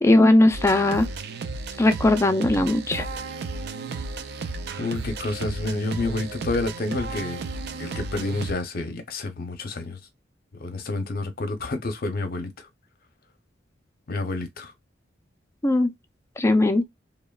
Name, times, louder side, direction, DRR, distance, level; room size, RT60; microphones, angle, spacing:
voice 1, 0.0-1.1 1.8-3.0 15.6-15.9 16.4-16.8, left 2 dB, 15° left, 0.3 m, -19 dB
sound 1, 0.5-8.5, right 3 dB, 60° right, 0.4 m, -33 dB
voice 2, 4.8-7.4 7.8-10.0 10.6-12.7 14.1-14.7, left 2 dB, 55° left, 0.6 m, -29 dB
3.0 x 2.1 x 2.2 m
head